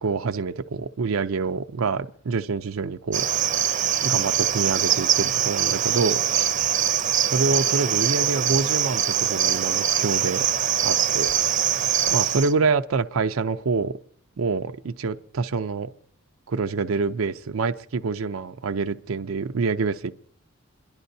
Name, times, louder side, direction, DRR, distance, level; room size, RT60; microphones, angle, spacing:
voice 1, 0.0-3.3 4.0-6.5 7.3-10.4 10.8-11.3 12.1-14.0 14.4-15.9 16.5-20.1, right 4 dB, 80° right, 0.5 m, -26 dB
Cricket, 3.1-12.5, right 9 dB, 35° right, 0.6 m, -23 dB
29.5 x 11.5 x 2.7 m
head